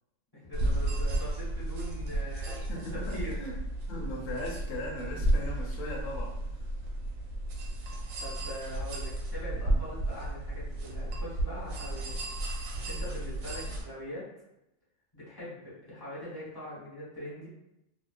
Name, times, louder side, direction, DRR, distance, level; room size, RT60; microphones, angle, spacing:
voice 1, 0.3-2.6 2.9-3.4 8.2-12.1 12.9-14.3 15.1-17.5, left 1 dB, 20° left, -10 dB, 1.1 m, -42 dB
sound 1, 0.5-13.8, right 1 dB, 85° right, 0.9 m, -33 dB
voice 2, 2.7-3.6 3.9-6.7 13.8-13.9, left 1 dB, 85° left, -2 dB, 1.0 m, -39 dB
2.3 x 2.3 x 2.4 m, 0.86 s
omnidirectional pair, 1.3 m